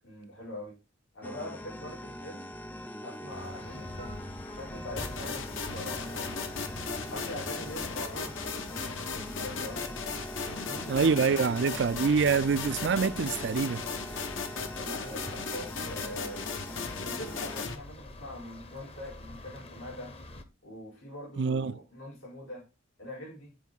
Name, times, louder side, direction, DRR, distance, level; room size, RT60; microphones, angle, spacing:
voice 1, 0.0-0.8 1.1-2.5 3.0-6.7 7.1-10.1 10.5-11.3 14.7-16.5 17.0-20.2 20.6-22.6 23.0-23.5, left 1 dB, 90° left, 5.2 m, -43 dB
sound 1, 1.2-17.7, left 1 dB, 10° left, 0.5 m, -43 dB
sound 2, 3.3-20.4, left 1 dB, 30° left, 0.9 m, -47 dB
sound 3, 5.0-17.8, left 5 dB, 75° left, 1.2 m, -37 dB
voice 2, 10.9-13.8 21.4-21.7, right 5 dB, 60° right, 0.4 m, -26 dB
9.6 x 4.6 x 4.0 m
head